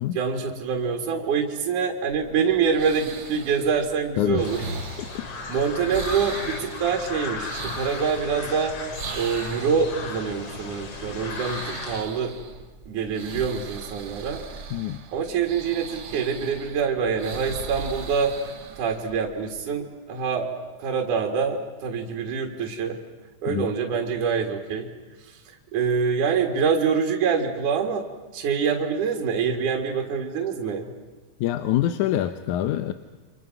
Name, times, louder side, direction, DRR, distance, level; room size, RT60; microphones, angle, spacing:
voice 1, 0.1-4.6 5.5-8.7 9.1-12.4 12.9-14.4 15.1-18.3 18.8-20.5 20.8-23.0 23.4-24.9 25.3-28.0 28.3-30.9, right 6 dB, 75° right, 2 dB, 3.4 m, -25 dB
sound 1, 2.1-19.6, right 5 dB, 45° right, 1.9 m, -40 dB
voice 2, 4.2-4.7 14.7-15.0 23.5-23.7 31.4-32.9, left 12 dB, 75° left, 10 dB, 2.3 m, -25 dB
sound 2, 4.4-12.0, left 4 dB, 50° left, 3.1 m, -36 dB
29.5 x 26.0 x 5.9 m, 1.3 s
omnidirectional pair, 3.6 m